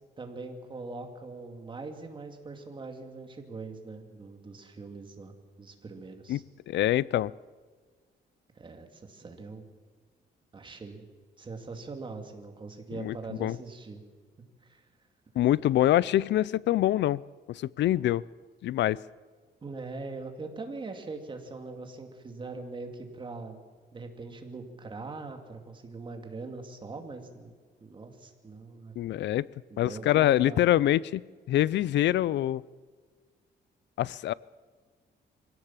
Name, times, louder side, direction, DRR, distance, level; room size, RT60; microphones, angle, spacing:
voice 1, 0.2-5.3 5.6-6.4 8.6-9.6 10.5-11.0 11.4-14.0 14.6-14.8 19.6-23.6 23.9-27.5 27.8-28.9 29.7-30.7, right 3 dB, 25° right, 4 dB, 2.4 m, -42 dB
voice 2, 6.7-7.3 12.9-13.6 15.4-17.2 17.5-18.2 18.6-19.0 29.0-29.4 29.8-31.2 31.5-32.6 34.0-34.3, left 13 dB, 85° left, 22 dB, 0.5 m, -25 dB
23.5 x 17.0 x 7.4 m, 1.5 s
wide cardioid pair, 155°, 18 cm